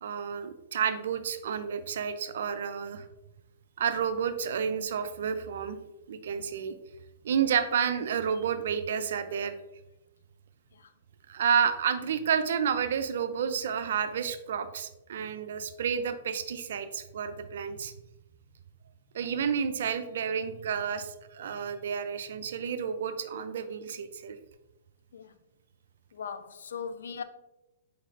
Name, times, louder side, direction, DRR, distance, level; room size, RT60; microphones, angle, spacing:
voice 1, 0.0-3.1 3.8-5.8 6.1-6.7 7.2-9.5 11.3-17.9 19.1-24.4, right 7 dB, 70° right, 0.4 m, -30 dB
voice 2, 26.1-27.2, left 6 dB, 80° left, 0.3 m, -39 dB
4.6 x 3.2 x 2.5 m
hypercardioid pair, 130°, 0 cm